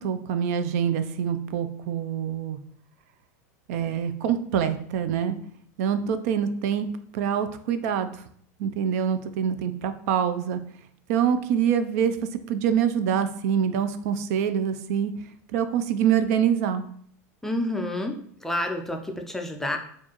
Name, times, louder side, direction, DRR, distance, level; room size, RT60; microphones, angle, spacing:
voice 1, 0.0-2.6 3.7-5.4 5.8-6.9 7.1-8.1 8.6-10.6 11.1-12.2 12.5-15.1 15.5-16.8, right 8 dB, 65° right, 10 dB, 0.4 m, -25 dB
voice 2, 17.4-19.8, left 1 dB, 5° left, 3 dB, 0.4 m, -29 dB
4.3 x 2.4 x 2.9 m, 0.62 s
supercardioid pair, 140°, 9 cm